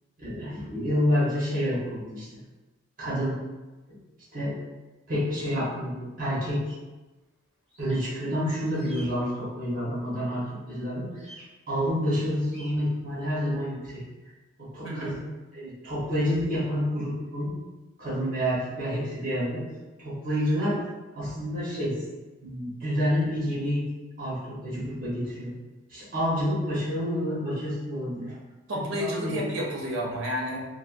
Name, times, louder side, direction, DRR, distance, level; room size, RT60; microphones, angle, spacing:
voice 1, 0.2-2.3 3.0-3.3 4.3-4.5 5.1-6.7 7.8-11.3 11.7-14.0 14.6-15.2 15.5-17.5 18.0-19.6 20.0-20.8 21.1-22.0 22.4-23.8 24.2-25.5 25.9-28.4 28.8-29.4, equal, 40° right, -8 dB, 1.0 m, -28 dB
sound 1, 7.7-8.1 8.7-9.1 11.1-11.4 12.4-12.7, right 1 dB, 5° left, 1.0 m, -48 dB
voice 2, 14.8-15.1 28.7-30.6, equal, 65° right, -2 dB, 0.7 m, -30 dB
3.3 x 2.2 x 2.5 m, 1.2 s
head